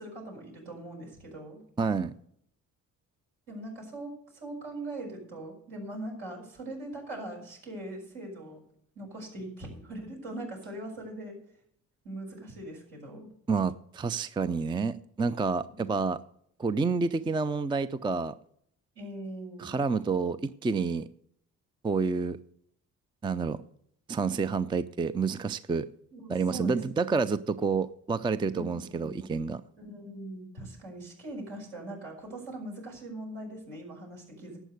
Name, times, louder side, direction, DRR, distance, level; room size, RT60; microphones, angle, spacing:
voice 1, 0.0-1.6 3.5-8.6 9.0-11.4 12.0-13.3 15.7-16.0 18.9-19.7 26.1-26.8 28.5-29.3 29.8-34.6, right 1 dB, 65° right, -1 dB, 5.9 m, -41 dB
voice 2, 1.8-2.1 13.5-16.2 16.6-18.3 19.6-21.1 21.8-22.4 23.2-23.6 24.1-25.9 26.3-29.6, right 4 dB, 10° right, 15 dB, 0.5 m, -29 dB
12.0 x 8.2 x 6.6 m, 0.67 s
hypercardioid pair, 50°, 45 cm